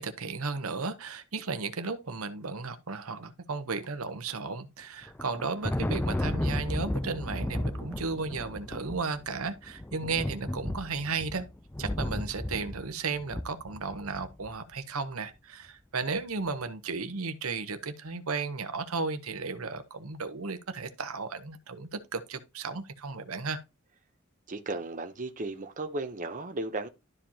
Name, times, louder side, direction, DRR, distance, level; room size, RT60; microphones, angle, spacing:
voice 1, 0.0-11.5 11.8-23.6, right 4 dB, 80° right, 1.0 m, -34 dB
Thunder, 5.0-14.5, left 1 dB, 10° left, 0.4 m, -34 dB
voice 2, 24.5-26.9, right 2 dB, 40° right, 0.9 m, -35 dB
12.0 x 4.9 x 2.9 m
head